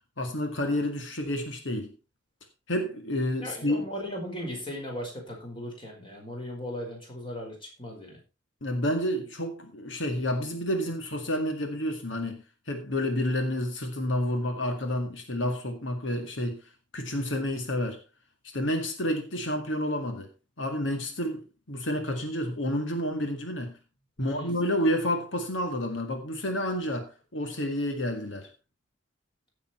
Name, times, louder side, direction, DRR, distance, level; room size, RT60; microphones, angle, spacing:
voice 1, 0.2-1.9 2.7-3.8 8.6-16.6 16.9-18.0 18.5-20.3 20.6-23.8 24.2-28.5, left 1 dB, 80° left, 2.1 m, -30 dB
voice 2, 3.4-8.2 24.2-24.6, equal, 25° left, 5.0 m, -37 dB
16.0 x 7.1 x 4.4 m
head